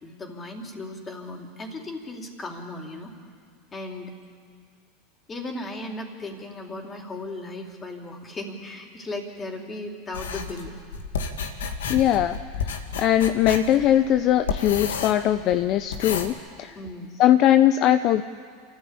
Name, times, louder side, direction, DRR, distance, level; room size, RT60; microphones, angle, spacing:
voice 1, 0.0-3.1 3.7-4.1 5.3-10.7 16.7-17.1, left 2 dB, 25° left, 2 dB, 4.3 m, -36 dB
sound 1, 10.1-16.3, left 5 dB, 80° left, 2.1 m, -32 dB
voice 2, 11.9-12.4 13.0-16.3 16.6-16.8 17.2-18.2, left 12 dB, 50° left, 11 dB, 0.8 m, -20 dB
28.5 x 14.5 x 8.8 m, 2.1 s
hypercardioid pair, 90°, 0 cm